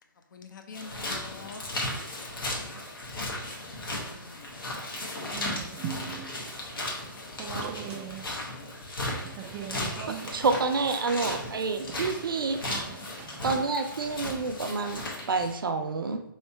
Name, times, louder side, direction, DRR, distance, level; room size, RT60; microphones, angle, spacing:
voice 1, 0.3-1.8 3.8-4.6 8.3-8.7, left 5 dB, 65° left, 0.7 m, -47 dB
sound 1, 0.7-15.6, left 1 dB, 90° left, 1.2 m, -36 dB
voice 2, 5.3-6.3 7.4-8.3 9.2-10.4 12.6-13.5, right 8 dB, 20° right, 0.3 m, -39 dB
voice 3, 10.2-12.6 13.4-16.2, right 4 dB, 80° right, 0.6 m, -28 dB
3.2 x 2.8 x 4.3 m
hypercardioid pair, 145°, 11 cm